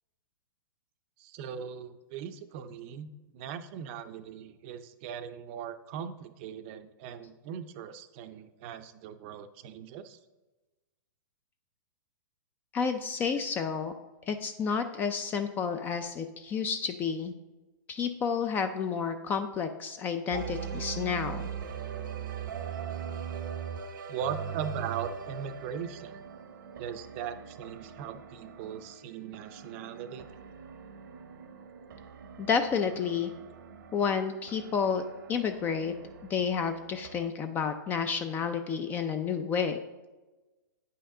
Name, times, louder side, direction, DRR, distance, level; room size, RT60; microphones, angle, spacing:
voice 1, 1.2-10.2 24.1-26.2 26.8-30.3, right 8 dB, 35° right, 10 dB, 0.5 m, -39 dB
voice 2, 12.7-13.9 14.3-17.3 17.9-21.4 32.4-33.3 33.9-35.0 35.3-35.9 36.3-39.8, left 6 dB, 15° left, 8 dB, 0.3 m, -30 dB
sound 1, 20.3-37.3, right 8 dB, 70° right, 0.8 m, -41 dB
9.1 x 5.6 x 3.7 m, 1.1 s
hypercardioid pair, 150°, 11 cm